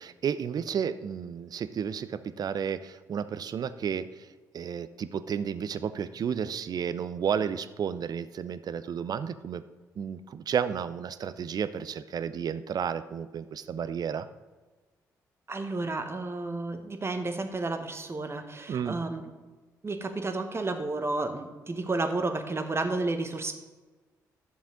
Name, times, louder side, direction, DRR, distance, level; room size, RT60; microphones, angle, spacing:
voice 1, 0.0-4.3 4.5-9.6 10.0-14.3 18.7-19.0, right 7 dB, 45° right, 14 dB, 0.5 m, -32 dB
voice 2, 15.5-19.3 19.8-23.5, right 3 dB, 30° right, 7 dB, 1.1 m, -31 dB
11.0 x 7.1 x 3.8 m, 1.3 s
figure-of-eight pair, 40°, 9 cm